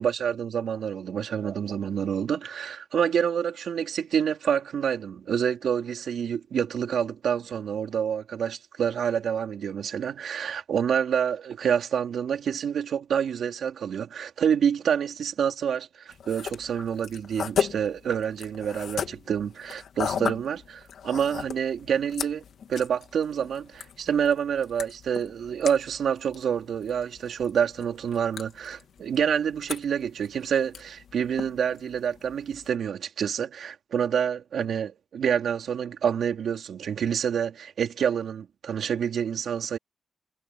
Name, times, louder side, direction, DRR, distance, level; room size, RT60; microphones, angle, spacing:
voice 1, 0.0-22.4 22.7-39.8, right 8 dB, 85° right, 3.7 m, -27 dB
sound 1, 16.1-32.7, left 7 dB, 85° left, 2.3 m, -37 dB
cardioid pair, 100°, 0 cm